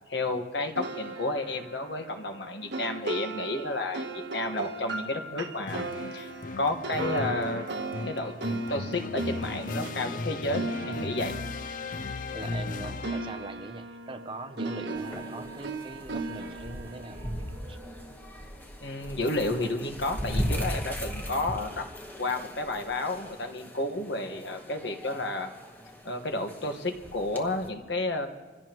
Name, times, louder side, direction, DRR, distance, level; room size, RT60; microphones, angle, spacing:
voice 1, 0.1-4.0 4.3-5.8 6.1-6.3 6.6-7.7 8.0-8.3 8.7-11.4 12.8-12.9 18.8-21.9 22.2-25.5 26.0-28.3, left 2 dB, 65° left, 5 dB, 1.5 m, -31 dB
sound 1, 0.8-12.7 13.0-18.3, right 2 dB, 65° right, 1.2 m, -37 dB
sound 2, 5.7-13.5, left 3 dB, 45° left, 0.4 m, -36 dB
voice 2, 12.3-17.3 17.7-17.8, right 2 dB, 25° right, 9 dB, 0.7 m, -41 dB
sound 3, 15.0-27.7, equal, 10° left, 1.2 m, -38 dB
26.5 x 16.5 x 3.1 m, 1.3 s
head